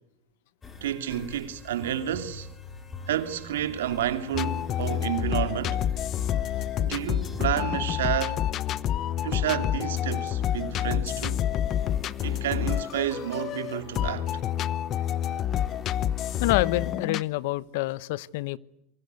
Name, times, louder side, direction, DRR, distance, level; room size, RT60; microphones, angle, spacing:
sound 1, 0.6-17.0, left 2 dB, 20° left, 4.4 m, -46 dB
voice 1, 0.8-2.5 3.1-5.8 6.8-8.4 9.2-11.4 12.2-14.3, right 11 dB, 90° right, 2.7 m, -30 dB
sound 2, 4.3-17.2, left 11 dB, 40° left, 0.9 m, -28 dB
voice 2, 16.4-18.6, left 18 dB, 70° left, 0.9 m, -27 dB
26.0 x 24.0 x 8.3 m
supercardioid pair, 125°, 0 cm